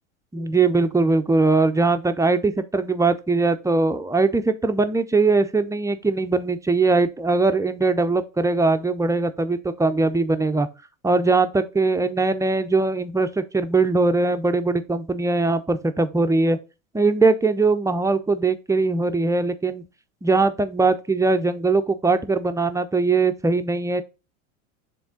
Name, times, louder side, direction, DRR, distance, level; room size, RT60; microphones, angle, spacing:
voice 1, 0.3-10.7 11.0-16.6 16.9-19.8 20.2-24.0, right 3 dB, 10° right, 0.5 m, -21 dB
7.0 x 3.7 x 3.7 m
hypercardioid pair, 90°, 40 cm